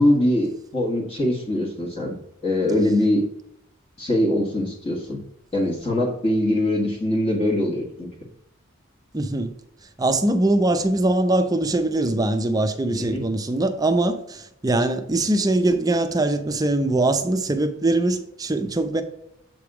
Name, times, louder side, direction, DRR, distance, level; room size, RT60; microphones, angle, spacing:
voice 1, 0.0-2.2 2.4-3.3 4.0-5.2 5.5-8.1 12.9-13.3, left 1 dB, 30° left, 1.4 m, -22 dB
voice 2, 9.1-9.5 10.0-19.0, right 2 dB, 20° right, 0.5 m, -22 dB
7.7 x 3.4 x 4.7 m
head